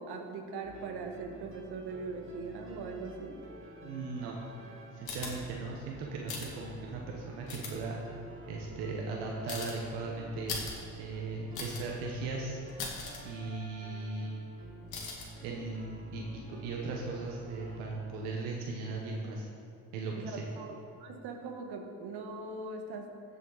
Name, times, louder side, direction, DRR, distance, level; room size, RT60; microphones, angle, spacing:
voice 1, 0.0-3.4 20.2-23.2, right 3 dB, 70° right, 3 dB, 1.6 m, -41 dB
sound 1, 0.6-17.8, right 2 dB, 30° right, 2.3 m, -50 dB
voice 2, 3.8-4.4 5.0-8.0 8.5-10.6 11.0-12.6 13.2-14.4 15.4-19.5 19.9-20.5, right 3 dB, 90° right, -1 dB, 1.2 m, -38 dB
sound 2, 5.1-5.3 6.3-6.5 7.5-7.7 9.5-9.7 10.5-10.8 11.0-11.1 11.5-11.9 12.3-12.4 12.7-13.2 14.9-15.2, left 4 dB, 65° left, 2.6 m, -38 dB
15.5 x 7.5 x 4.1 m, 2.4 s
supercardioid pair, 70°, 40 cm